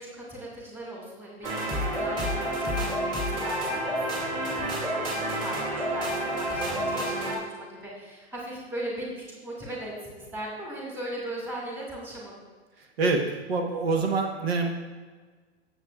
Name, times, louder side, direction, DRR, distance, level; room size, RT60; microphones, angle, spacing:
voice 1, 0.0-12.4, right 1 dB, 5° right, -4 dB, 2.0 m, -39 dB
sound 1, 1.4-7.3, right 1 dB, 20° right, 2.2 m, -29 dB
voice 2, 13.5-14.7, right 3 dB, 65° right, 2 dB, 1.3 m, -25 dB
15.0 x 7.2 x 2.4 m, 1.4 s
hypercardioid pair, 160°, 34 cm